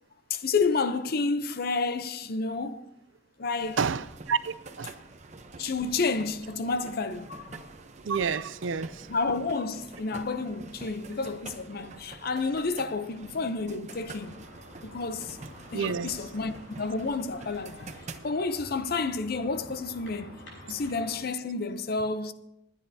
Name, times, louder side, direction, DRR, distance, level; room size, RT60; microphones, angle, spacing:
voice 1, 0.3-2.9 3.4-3.8 5.6-7.6 9.1-14.4 14.8-15.4 15.7-17.9 18.2-20.3 20.7-22.3, left 4 dB, 50° left, 0.6 m, -30 dB
sound 1, 3.6-18.2, right 3 dB, 35° right, 0.8 m, -47 dB
voice 2, 3.8-4.9 8.0-9.1 15.7-16.1, right 6 dB, 75° right, 0.5 m, -29 dB
sound 2, 13.9-21.2, left 1 dB, 70° left, 5.7 m, -49 dB
21.5 x 9.9 x 2.7 m
head